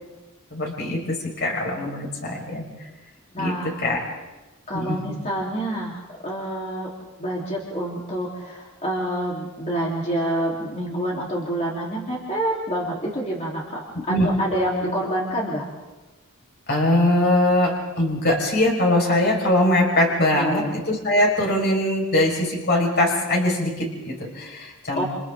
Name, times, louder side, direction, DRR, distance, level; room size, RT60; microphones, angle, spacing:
voice 1, 0.5-2.7 3.4-4.0 4.7-5.0 14.1-14.3 16.7-25.0, left 1 dB, 50° left, -1 dB, 5.4 m, -22 dB
voice 2, 3.3-4.0 4.7-6.9 7.2-15.6 20.3-20.7 24.9-25.0, right 1 dB, 30° left, -4 dB, 3.8 m, -27 dB
29.5 x 29.5 x 3.9 m, 1.1 s
head